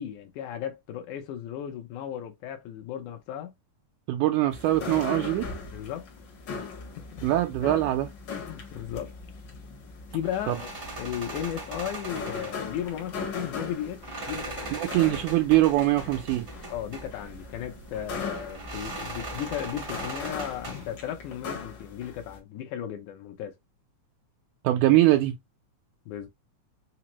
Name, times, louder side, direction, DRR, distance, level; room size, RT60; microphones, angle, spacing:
voice 1, 0.0-3.5 5.7-6.1 6.5-6.7 7.0-7.2 8.4-9.1 10.1-10.7 11.0-15.0 16.7-23.6 26.1-26.3, left 10 dB, 80° left, 2.0 m, -35 dB
voice 2, 4.1-5.5 7.2-8.1 10.5-10.6 14.7-16.5 24.6-25.3, right 15 dB, 85° right, 2.0 m, -22 dB
sound 1, 4.5-22.4, left 4 dB, 60° left, 1.2 m, -39 dB
sound 2, 10.2-21.0, right 2 dB, 50° right, 0.6 m, -40 dB
5.1 x 2.0 x 2.9 m
omnidirectional pair, 3.5 m